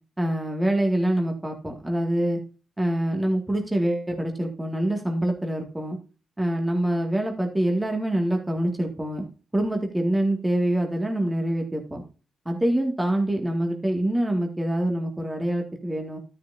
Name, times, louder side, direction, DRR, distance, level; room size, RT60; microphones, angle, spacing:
voice 1, 0.2-2.4 2.8-6.0 6.4-9.2 9.5-12.0 12.5-16.2, right 1 dB, 15° right, 2 dB, 2.0 m, -25 dB
13.0 x 6.5 x 2.6 m, 0.34 s
cardioid pair, 60°, 0 cm